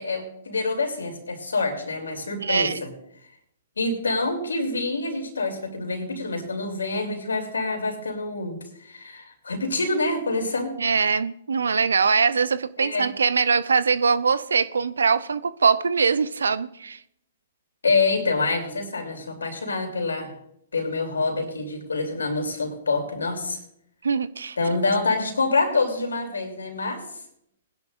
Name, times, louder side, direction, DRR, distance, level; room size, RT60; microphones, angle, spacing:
voice 1, 0.0-2.9 3.8-10.7 12.8-13.1 17.8-20.3 20.7-23.6 24.6-27.0, left 3 dB, 80° left, 3.2 m, -26 dB
voice 2, 2.4-2.8 10.8-17.0 24.0-24.6, right 5 dB, 80° right, 0.6 m, -22 dB
20.5 x 10.5 x 2.6 m
hypercardioid pair, 120°, 0 cm